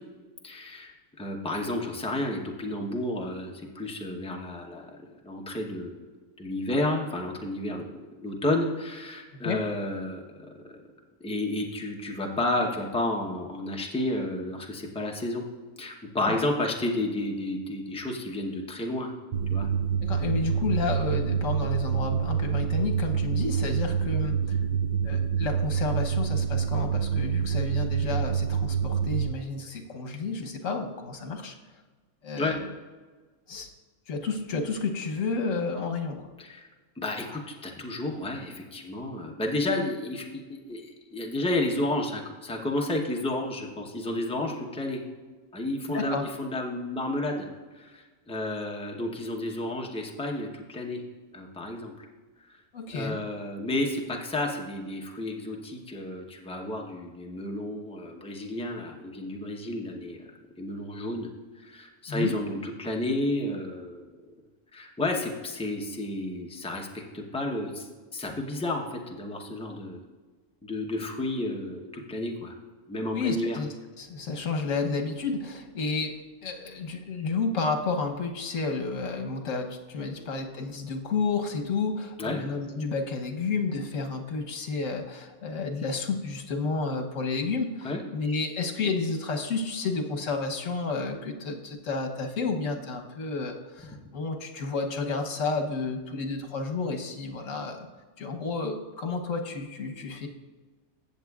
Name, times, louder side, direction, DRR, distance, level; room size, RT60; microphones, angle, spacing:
voice 1, 0.4-4.9 5.2-6.0 6.4-10.8 11.2-15.4 15.8-19.1 19.5-19.7 32.4-32.6 36.4-36.7 37.0-45.0 45.5-51.0 51.3-52.1 52.5-52.6 52.9-60.3 60.6-61.3 61.6-64.1 64.7-67.9 68.1-70.0 70.6-72.5 72.9-73.6 82.2-82.4 87.8-88.0, left 1 dB, 5° left, 0 dB, 0.7 m, -31 dB
sound 1, 19.3-29.3, right 7 dB, 65° right, 0.4 m, -27 dB
voice 2, 20.0-24.6 25.0-31.5 32.2-32.7 33.5-33.7 34.1-36.3 45.9-46.2 52.7-53.2 62.1-62.3 73.1-73.7 74.0-76.1 76.4-97.9 98.2-100.3, left 4 dB, 75° left, 3 dB, 1.3 m, -31 dB
16.0 x 7.0 x 2.4 m, 1.3 s
omnidirectional pair, 1.4 m